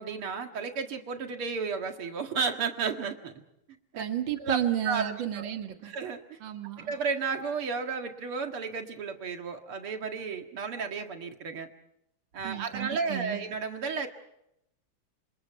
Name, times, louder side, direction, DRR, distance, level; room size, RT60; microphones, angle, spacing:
voice 1, 0.0-3.4 3.7-4.0 4.4-4.6 4.8-5.5 5.8-6.4 6.9-11.7 12.3-14.1, right 5 dB, 85° right, 5 dB, 2.8 m, -33 dB
voice 2, 4.0-5.9 6.4-6.9 12.4-13.4, right 11 dB, 60° right, 6 dB, 2.4 m, -32 dB
30.0 x 27.0 x 4.6 m, 0.80 s
omnidirectional pair, 2.3 m